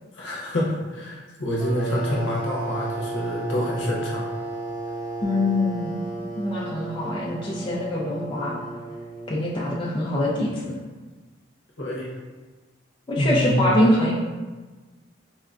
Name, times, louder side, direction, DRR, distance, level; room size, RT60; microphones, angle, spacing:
voice 1, 0.1-4.3 11.8-12.1 13.2-13.6, equal, 70° left, -4 dB, 0.8 m, -27 dB
sound 1, 1.6-10.0, right 2 dB, 70° right, 1.2 m, -34 dB
voice 2, 5.2-6.0 6.4-8.6 9.3-10.8 13.1-14.1, left 1 dB, 25° left, -6 dB, 0.4 m, -24 dB
4.4 x 2.2 x 2.4 m, 1.3 s
head